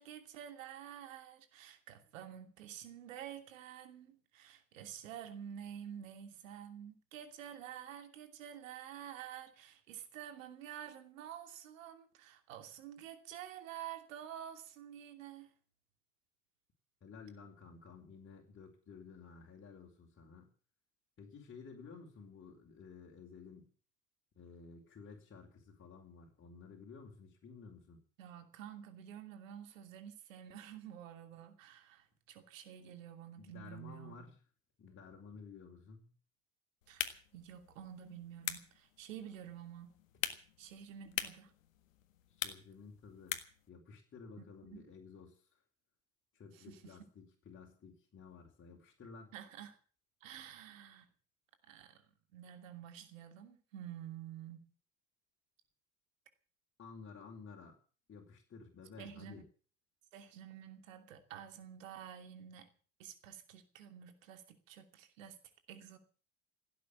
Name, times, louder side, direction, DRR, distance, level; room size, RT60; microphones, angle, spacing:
voice 1, 0.0-15.5 28.2-34.2 36.9-40.0 40.6-41.5 44.6-44.9 46.5-47.0 49.3-49.8 50.2-51.1 51.7-52.0 52.3-54.7 59.0-59.4 60.1-62.7 63.0-65.4 65.7-66.0, right 10 dB, 75° right, 2.9 m, -49 dB
voice 2, 17.0-20.5 21.2-23.7 24.4-28.0 33.4-34.3 34.8-36.1 42.3-43.4 43.7-45.5 46.3-49.3 56.8-57.8 58.1-59.5, left 5 dB, 30° left, 4.8 m, -53 dB
sound 1, 36.8-43.7, left 11 dB, 80° left, 1.7 m, -44 dB
17.0 x 9.3 x 8.7 m
hypercardioid pair, 80°, 39 cm